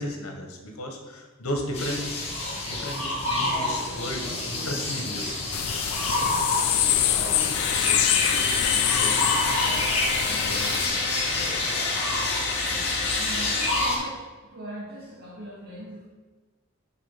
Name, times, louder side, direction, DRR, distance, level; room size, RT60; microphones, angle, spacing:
voice 1, 0.0-2.3 2.7-5.4 6.7-9.6 10.2-10.7, equal, 70° left, 3 dB, 1.4 m, -35 dB
sound 1, 1.7-14.0, left 2 dB, 30° left, 1.6 m, -28 dB
sound 2, 5.5-10.9, left 13 dB, 85° left, 0.4 m, -26 dB
sound 3, 7.5-13.7, left 4 dB, 50° left, 0.9 m, -30 dB
voice 2, 13.2-14.2 14.5-16.1, right 1 dB, 45° right, -6 dB, 1.9 m, -39 dB
6.5 x 4.8 x 5.8 m, 1.3 s
head